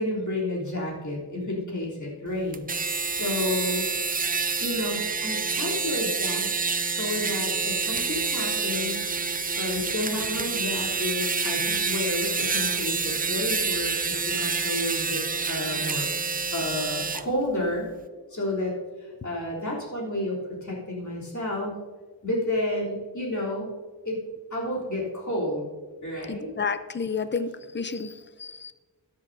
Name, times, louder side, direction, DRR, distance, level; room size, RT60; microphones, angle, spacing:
voice 1, 0.0-2.7 3.1-3.8 4.6-9.0 9.5-16.1 16.5-17.9 18.3-21.8 22.2-23.7 24.0-24.2 24.5-25.7 26.0-26.5, left 1 dB, 40° left, -4 dB, 3.2 m, -31 dB
sound 1, 2.5-17.2, right 4 dB, 20° right, 0.4 m, -28 dB
voice 2, 26.3-27.5 27.7-28.7, left 5 dB, 25° left, 12 dB, 0.5 m, -30 dB
13.5 x 10.0 x 2.7 m, 1.4 s
wide cardioid pair, 85°, 44 cm